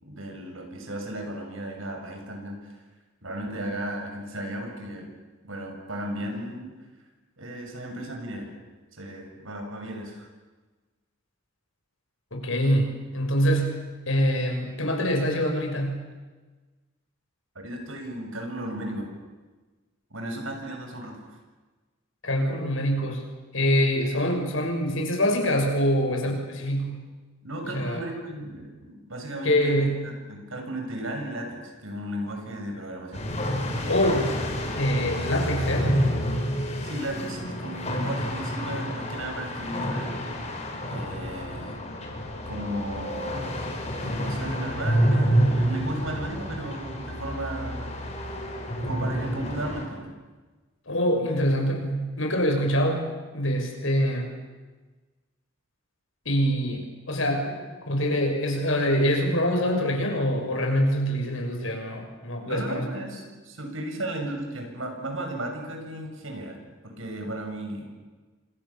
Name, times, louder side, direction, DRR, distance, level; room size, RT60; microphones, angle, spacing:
voice 1, 0.0-2.7 3.2-5.1 5.4-6.7 7.4-8.6 8.9-10.3 17.6-19.1 20.1-21.2 27.4-29.9 30.3-33.3 36.8-40.1 40.9-41.8 42.5-43.6 44.0-47.9 48.8-50.1 51.2-51.4 62.5-66.6 66.8-67.9, right 1 dB, 75° right, 3 dB, 7.1 m, -35 dB
voice 2, 12.3-16.1 22.2-23.2 23.5-27.0 27.7-28.0 29.4-30.1 33.9-34.4 34.7-36.0 50.9-54.3 56.2-57.5 57.9-62.8, equal, 75° left, 3 dB, 6.4 m, -25 dB
sound 1, 33.1-49.8, equal, 35° left, 5.0 m, -29 dB
29.5 x 26.0 x 7.3 m, 1.3 s
head